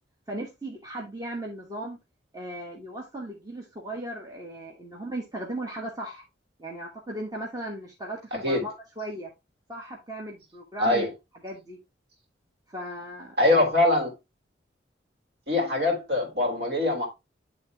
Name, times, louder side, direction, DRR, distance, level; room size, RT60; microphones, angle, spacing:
voice 1, 0.3-2.0 2.3-6.2 6.6-9.3 9.7-11.1 11.4-11.8 12.7-13.6, right 1 dB, 20° right, 1.2 m, -37 dB
voice 2, 10.8-11.1 13.4-14.1 15.5-17.1, left 2 dB, 60° right, 2.9 m, -23 dB
9.7 x 3.7 x 3.4 m
head